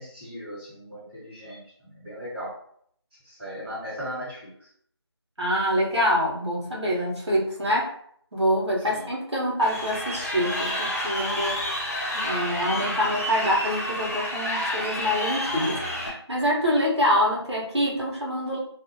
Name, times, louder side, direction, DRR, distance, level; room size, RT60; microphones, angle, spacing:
voice 1, 0.0-2.5 3.2-4.5 8.9-9.1, equal, 5° right, -20 dB, 1.4 m, -37 dB
voice 2, 5.4-7.9 8.3-11.7 12.1-18.6, equal, 80° right, -4 dB, 1.2 m, -25 dB
Crowd, 9.6-16.1, left 1 dB, 30° left, 0.7 m, -29 dB
2.6 x 2.5 x 2.7 m, 0.63 s
figure-of-eight pair, 175°, 14 cm